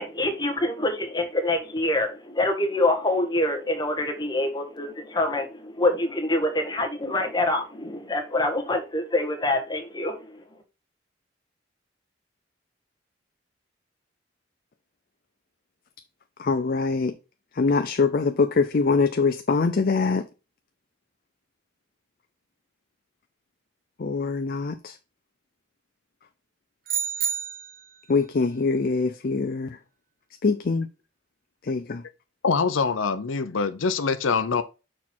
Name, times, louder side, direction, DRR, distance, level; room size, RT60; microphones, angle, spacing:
voice 1, 0.0-10.2, left 1 dB, 20° left, 1.3 m, -25 dB
voice 2, 16.4-17.1 17.6-20.3 24.0-24.9 28.1-29.8 30.4-30.9 31.6-32.0, left 4 dB, 50° left, 0.5 m, -23 dB
sound 1, 26.9-28.0, right 8 dB, 50° right, 1.0 m, -29 dB
voice 3, 32.4-34.6, left 5 dB, 90° left, 0.6 m, -24 dB
6.3 x 4.4 x 4.3 m
head